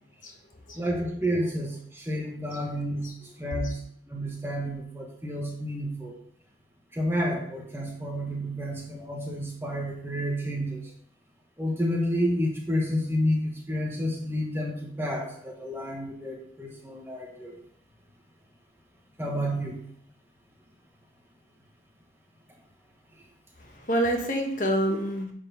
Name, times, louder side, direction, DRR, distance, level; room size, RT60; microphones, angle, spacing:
voice 1, 0.7-3.1 3.4-3.8 4.1-6.1 6.9-10.9 11.6-17.5 19.2-19.8 24.9-25.0, equal, 15° right, 0 dB, 1.5 m, -30 dB
voice 2, 23.6-25.3, right 1 dB, 45° left, 2 dB, 1.4 m, -27 dB
9.6 x 4.7 x 5.7 m, 0.65 s
head